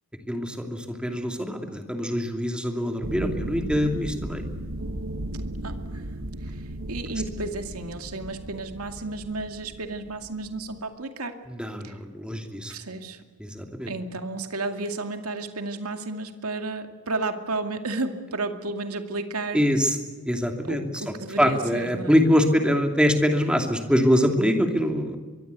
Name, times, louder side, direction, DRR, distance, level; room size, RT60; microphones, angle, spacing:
voice 1, 0.3-4.4 11.5-12.7 13.4-13.9 19.5-20.0 20.3-20.8 21.4-25.2, equal, 5° right, 4 dB, 2.6 m, -24 dB
sound 1, 3.0-10.8, right 1 dB, 65° right, 1.6 m, -36 dB
voice 2, 5.6-6.0 6.4-11.4 11.8-11.9 12.7-13.2 13.9-19.7 20.6-22.2, right 2 dB, 90° right, 6 dB, 2.3 m, -32 dB
24.0 x 23.5 x 8.3 m, 1.4 s
head